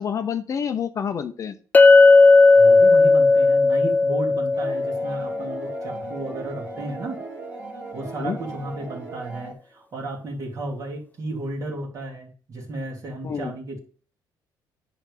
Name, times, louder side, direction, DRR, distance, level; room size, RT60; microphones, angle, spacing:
voice 1, 0.0-1.5 8.0-8.4 13.2-13.5, left 7 dB, 40° left, 9 dB, 0.8 m, -28 dB
Chink clink, 1.7-6.0, left 3 dB, 20° left, 0.4 m, -15 dB
voice 2, 2.6-7.2 7.9-13.8, right 2 dB, 45° right, -1 dB, 3.0 m, -33 dB
sound 1, 4.5-9.5, right 3 dB, 30° right, 2.9 m, -38 dB
10.0 x 3.5 x 6.7 m, 0.40 s
cardioid pair, 130°, 8 cm